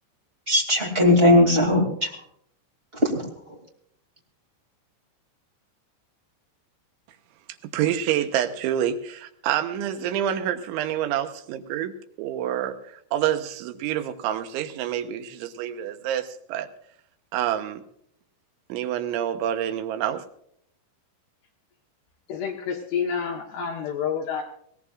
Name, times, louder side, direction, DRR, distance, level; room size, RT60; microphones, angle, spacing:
voice 1, 0.5-2.1 3.0-3.6, left 1 dB, 25° right, 0 dB, 1.3 m, -19 dB
voice 2, 7.7-16.7 17.3-17.8 18.7-20.2, right 10 dB, 80° right, 8 dB, 3.2 m, -27 dB
voice 3, 22.3-24.4, left 7 dB, 70° left, 1 dB, 3.0 m, -28 dB
21.0 x 18.0 x 2.4 m, 0.68 s
omnidirectional pair, 5.5 m